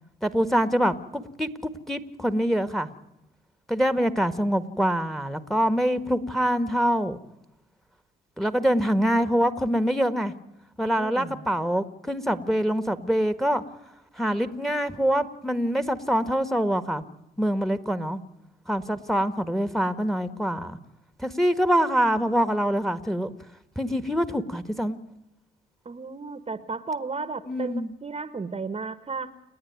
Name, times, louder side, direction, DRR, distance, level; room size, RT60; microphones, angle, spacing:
voice 1, 0.2-2.9 3.7-7.2 8.4-10.3 10.8-13.6 14.2-17.0 17.4-18.2 18.7-20.8 21.2-23.3 23.7-25.0 27.5-27.9, equal, ahead, 12 dB, 1.6 m, -25 dB
voice 2, 11.0-11.4 25.8-29.3, right 4 dB, 30° right, 13 dB, 1.2 m, -34 dB
29.5 x 9.9 x 9.4 m, 0.88 s
cardioid pair, 90°, 20 cm